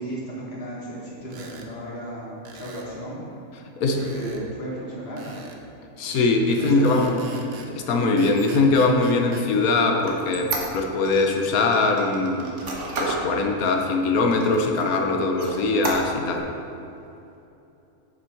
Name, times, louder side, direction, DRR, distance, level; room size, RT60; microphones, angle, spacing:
voice 1, 0.0-3.3 3.9-5.4 6.0-6.3 6.6-7.3, right 1 dB, 45° left, -5 dB, 2.0 m, -34 dB
sound 1, 1.3-1.7 2.4-2.9 4.0-4.4 5.2-5.6 6.5-7.7 8.2-9.5, right 4 dB, 90° right, 1.3 m, -42 dB
voice 2, 6.0-7.2 7.7-12.5 13.0-16.5, left 3 dB, 85° left, 3 dB, 1.3 m, -21 dB
Squeak, 8.3-11.3 11.7-13.3 13.8-13.9 14.3-15.0 15.3-16.4, right 2 dB, 60° right, 1.4 m, -32 dB
7.2 x 7.1 x 4.6 m, 2.8 s
omnidirectional pair, 1.5 m